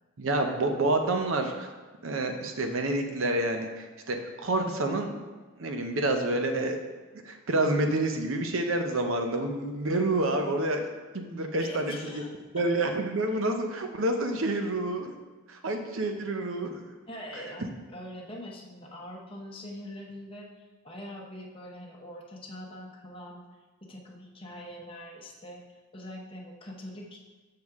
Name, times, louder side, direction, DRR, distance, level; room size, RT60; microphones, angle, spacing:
voice 1, 0.2-1.7 2.0-5.1 5.6-6.8 7.2-10.9 11.1-12.2 12.5-15.1 15.5-16.8, right 2 dB, 65° right, 5 dB, 0.7 m, -28 dB
voice 2, 11.6-12.6 17.1-23.4 23.8-25.6 25.9-27.2, left 1 dB, 25° left, -2 dB, 0.9 m, -43 dB
6.6 x 6.4 x 3.6 m, 1.3 s
head